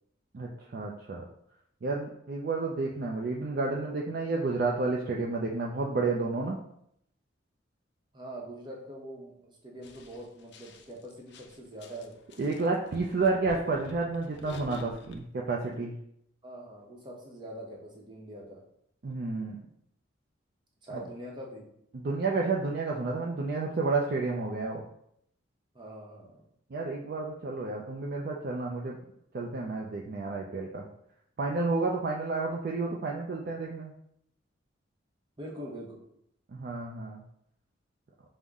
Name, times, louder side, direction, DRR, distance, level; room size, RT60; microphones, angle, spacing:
voice 1, 0.3-1.3 1.8-6.6 12.4-15.9 19.0-19.6 20.9-21.0 21.9-24.8 26.7-29.0 29.3-30.9 31.4-33.9 36.5-37.2, right 3 dB, 50° right, -1 dB, 0.4 m, -31 dB
voice 2, 8.1-12.2 16.4-18.6 20.8-21.7 25.7-26.4 35.4-36.0, right 1 dB, 25° right, -2 dB, 0.8 m, -43 dB
sound 1, 9.8-15.2 15.7-15.8, left 3 dB, 60° left, 0.4 m, -48 dB
5.3 x 2.1 x 3.5 m, 0.73 s
head